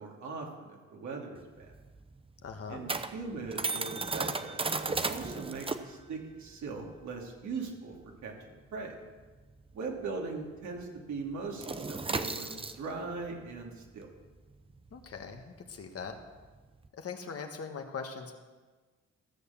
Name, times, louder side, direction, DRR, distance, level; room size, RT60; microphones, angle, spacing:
voice 1, 0.0-1.7 2.7-8.0 8.2-8.3 8.7-8.9 9.7-14.1, right 4 dB, 70° right, 0 dB, 2.7 m, -40 dB
sound 1, 1.4-10.3 10.6-10.8 11.1-16.9, right 3 dB, 20° right, 0.7 m, -36 dB
voice 2, 2.4-2.8 14.9-16.2 17.0-18.3, left 5 dB, 50° left, 4 dB, 1.6 m, -41 dB
14.5 x 6.7 x 7.2 m, 1.3 s
cardioid pair, 90°, 30 cm